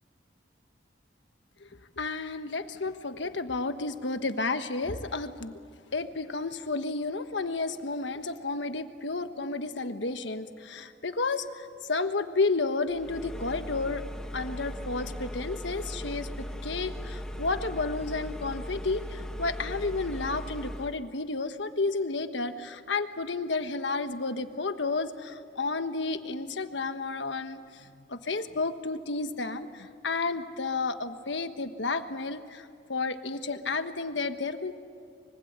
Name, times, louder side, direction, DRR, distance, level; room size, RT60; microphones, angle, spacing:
voice 1, 2.0-5.5 5.9-14.0 14.3-34.7, left 3 dB, 75° left, 8 dB, 1.4 m, -32 dB
sound 1, 12.9-21.0, equal, 5° left, 1.2 m, -38 dB
25.0 x 24.5 x 8.2 m, 2.3 s
head